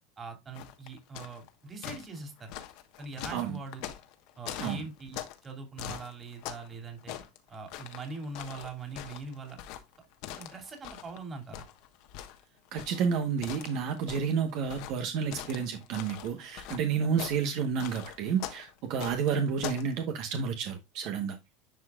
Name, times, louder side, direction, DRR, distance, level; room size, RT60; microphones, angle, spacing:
voice 1, 0.2-2.5 3.0-3.9 4.4-7.1 7.5-9.6 10.4-11.6 17.0-17.1, right 3 dB, 25° right, 2.8 m, -42 dB
sound 1, 0.5-1.5 1.8-5.5 5.8-6.7 7.0-11.2 11.5-19.9, left 12 dB, 65° left, 1.3 m, -42 dB
voice 2, 12.7-21.4, right 6 dB, 60° right, 1.2 m, -30 dB
10.5 x 4.9 x 2.4 m
supercardioid pair, 115°, 0 cm